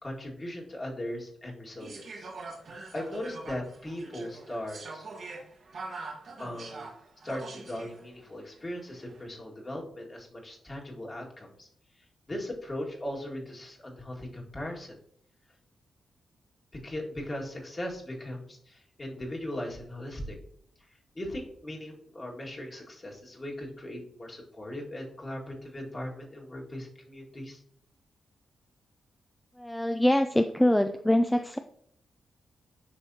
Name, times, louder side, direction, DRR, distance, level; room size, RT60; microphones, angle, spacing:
voice 1, 0.0-2.3 2.9-5.1 6.4-6.9 7.2-11.7 12.3-15.0 16.8-20.4 21.2-27.6, left 1 dB, 35° left, -1 dB, 2.0 m, -38 dB
sound 1, 1.8-8.0 8.9-9.2, right 3 dB, 65° right, 1.2 m, -43 dB
voice 2, 29.6-31.6, left 1 dB, 10° left, 7 dB, 0.4 m, -24 dB
10.0 x 3.5 x 2.8 m, 0.64 s
supercardioid pair, 45°, 0 cm